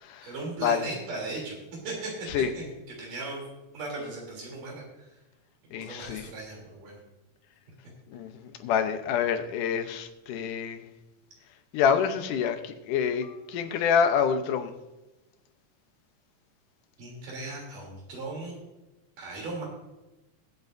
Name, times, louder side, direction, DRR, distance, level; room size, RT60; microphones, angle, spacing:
voice 1, 0.2-1.6 1.8-3.4 3.7-5.1 5.8-7.0 17.0-18.6 19.2-19.6, right 2 dB, 80° right, -2 dB, 4.8 m, -37 dB
voice 2, 5.7-6.3 8.1-8.3 8.6-10.8 11.7-14.7, left 7 dB, 80° left, 8 dB, 2.4 m, -27 dB
21.0 x 8.1 x 2.6 m, 1.0 s
omnidirectional pair, 3.7 m